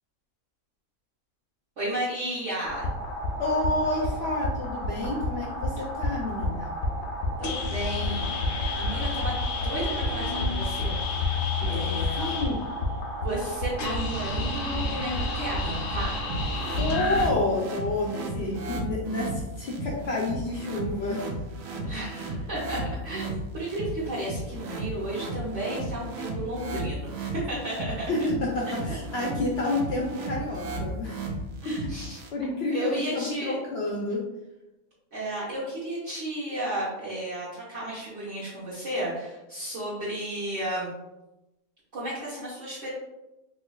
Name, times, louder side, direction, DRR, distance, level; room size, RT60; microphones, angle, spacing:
voice 1, 1.8-2.9 7.4-8.2 8.8-9.4 9.6-11.3 11.7-12.3 13.2-16.2 21.8-28.1 28.7-28.8 31.6-32.2 32.7-33.6 35.1-40.9 41.9-42.9, right 1 dB, 60° right, -9 dB, 1.1 m, -33 dB
sound 1, 2.6-17.3, left 2 dB, 85° left, 1.1 m, -29 dB
voice 2, 3.4-6.7 11.6-12.6 16.8-21.3 21.7-21.8 28.1-31.2 31.6-31.9 32.3-34.2, left 2 dB, 65° left, -2 dB, 0.6 m, -29 dB
sound 2, 16.3-32.3, right 2 dB, 75° right, 1.0 m, -35 dB
3.2 x 3.2 x 2.3 m, 0.98 s
omnidirectional pair, 1.5 m